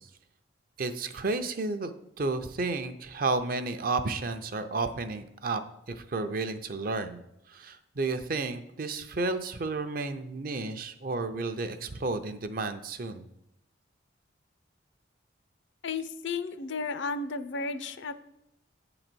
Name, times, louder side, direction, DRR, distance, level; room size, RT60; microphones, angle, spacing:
voice 1, 0.8-5.6 5.9-7.2 7.5-13.2, right 3 dB, 45° right, 9 dB, 0.5 m, -32 dB
voice 2, 15.8-18.1, left 4 dB, 70° left, 11 dB, 0.5 m, -33 dB
8.8 x 3.9 x 6.1 m, 0.84 s
head